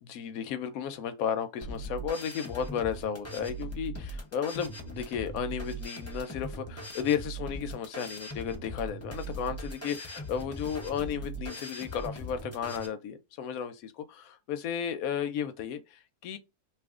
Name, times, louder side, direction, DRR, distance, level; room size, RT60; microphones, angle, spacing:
voice 1, 0.0-16.4, left 8 dB, 70° left, 0.9 m, -34 dB
sound 1, 1.6-12.9, right 1 dB, 15° left, 0.5 m, -40 dB
2.9 x 2.4 x 3.5 m
omnidirectional pair, 1.6 m